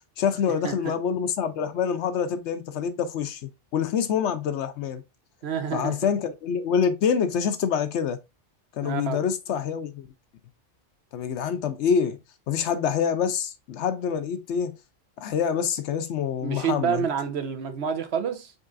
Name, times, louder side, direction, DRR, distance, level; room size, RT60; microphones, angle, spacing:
voice 1, 0.2-3.4 3.7-5.0 5.7-8.2 8.7-10.1 11.1-12.2 12.5-14.8 15.2-17.0, left 7 dB, 75° left, 0.9 m, -26 dB
voice 2, 5.4-6.0 8.8-9.2 16.4-18.5, right 7 dB, 65° right, 1.0 m, -28 dB
5.3 x 3.6 x 2.5 m
omnidirectional pair, 1.2 m